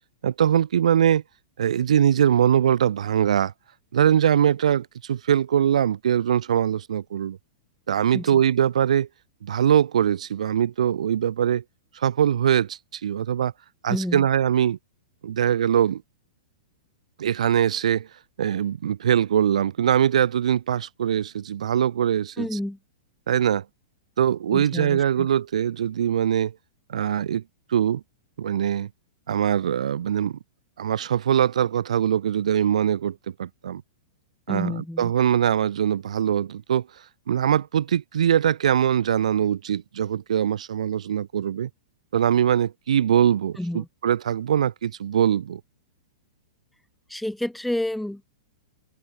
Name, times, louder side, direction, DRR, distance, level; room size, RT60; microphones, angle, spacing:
voice 1, 0.2-1.2 1.6-3.5 3.9-7.4 7.9-9.1 9.4-11.6 11.9-13.5 13.8-14.8 15.2-16.0 17.2-18.1 18.4-22.5 23.3-23.6 24.2-26.5 26.9-27.4 27.7-28.0 28.4-28.9 29.3-30.4 30.8-33.8 34.5-36.9 37.3-41.7 42.1-45.6, right 9 dB, 85° right, 1.4 m, -22 dB
voice 2, 13.9-14.3 22.4-22.8 24.5-25.3 34.5-35.1 43.6-43.9 47.1-48.2, left 1 dB, ahead, 3.1 m, -30 dB
hypercardioid pair, 165°, 4 cm